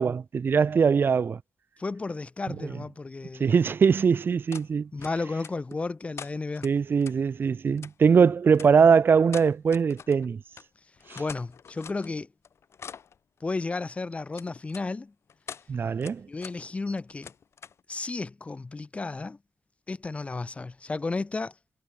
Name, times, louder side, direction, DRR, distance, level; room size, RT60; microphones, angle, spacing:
voice 1, 0.0-1.4 3.4-4.9 6.6-10.4 15.7-16.2, right 6 dB, 45° right, 0.6 m, -21 dB
voice 2, 1.8-3.5 4.9-6.7 11.2-12.3 13.4-15.1 16.3-17.3 17.9-19.4 19.9-21.5, left 3 dB, 25° left, 1.7 m, -33 dB
sound 1, 4.5-4.7 5.0-5.8 6.2-7.2 7.8-7.9 8.5-8.7 9.3-10.3 10.5-10.7 11.0-12.1 12.4-13.2 14.3-14.8 15.3-15.7 16.0-16.6 16.9-17.8, left 7 dB, 65° left, 4.7 m, -44 dB
wide cardioid pair, 150°, 5 cm